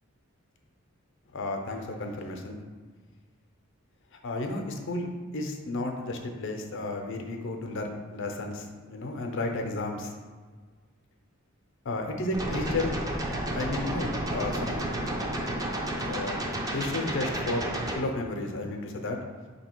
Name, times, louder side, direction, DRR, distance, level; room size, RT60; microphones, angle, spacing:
voice 1, 1.3-2.6 4.2-10.1 11.8-13.0 13.5-14.9 16.1-16.4 16.7-19.2, left 2 dB, 65° left, 3 dB, 0.5 m, -32 dB
sound 1, 12.3-18.0, right 1 dB, 15° right, 0.4 m, -31 dB
3.8 x 2.8 x 4.4 m, 1.5 s
head